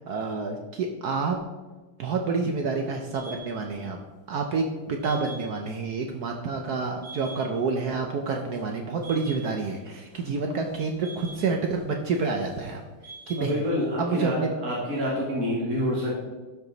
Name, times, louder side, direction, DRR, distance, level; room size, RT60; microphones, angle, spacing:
voice 1, 0.0-1.4 2.0-4.0 4.3-12.8 13.3-13.5 14.0-14.6, right 4 dB, 70° right, 3 dB, 0.9 m, -28 dB
sound 1, 3.1-3.6 5.0-5.7 6.1-6.2 6.6-6.7 7.0-7.7 8.0-8.7 9.0-9.8 10.0-11.8 12.1-12.6 13.0-13.5, right 3 dB, 5° right, 2.8 m, -46 dB
voice 2, 13.4-16.2, equal, 45° right, -5 dB, 2.0 m, -27 dB
12.0 x 4.9 x 3.9 m, 1.2 s
omnidirectional pair, 2.3 m